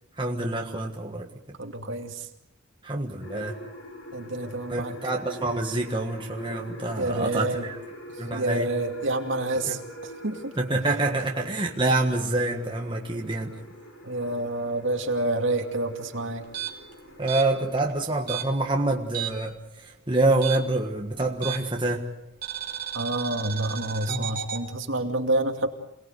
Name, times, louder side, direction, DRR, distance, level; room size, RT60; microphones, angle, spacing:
voice 1, 0.2-1.3 2.8-3.6 4.7-7.8 8.2-8.7 9.7-9.8 10.6-13.5 17.2-19.5 20.1-22.1 24.1-24.3, right 2 dB, 20° right, 1 dB, 1.6 m, -26 dB
voice 2, 1.6-2.3 4.1-4.9 7.0-7.7 8.3-10.5 14.0-16.5 22.9-25.7, right 2 dB, 60° right, 4 dB, 2.6 m, -28 dB
sound 1, 3.2-17.8, equal, 75° left, 5.9 m, -44 dB
sound 2, 16.4-19.6 19.8-21.9 22.4-24.6, right 10 dB, 40° right, 3.0 m, -34 dB
28.0 x 19.0 x 8.2 m, 0.84 s
head